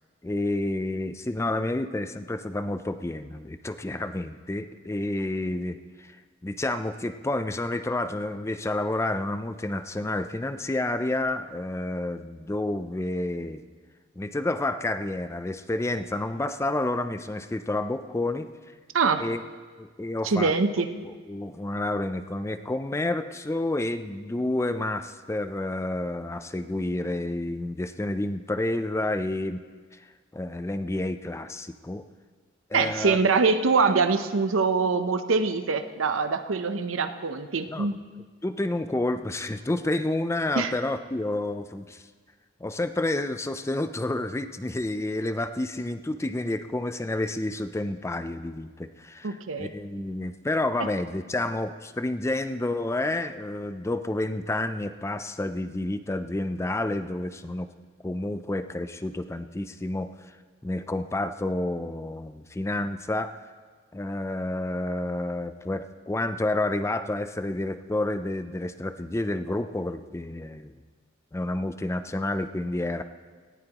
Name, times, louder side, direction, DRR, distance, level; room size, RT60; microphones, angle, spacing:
voice 1, 0.2-5.8 6.1-6.2 6.4-13.6 14.2-18.5 19.2-19.4 19.8-20.5 21.0-29.6 30.3-32.1 32.7-33.2 37.7-37.9 38.4-42.0 42.6-57.7 58.0-60.1 60.6-63.4 63.9-70.7 71.3-73.0, left 2 dB, 15° left, 10 dB, 0.4 m, -29 dB
voice 2, 20.2-20.9 32.7-38.0 40.6-40.7 49.2-49.7, right 4 dB, 90° right, 9 dB, 0.7 m, -24 dB
18.5 x 14.5 x 3.0 m, 1.5 s
head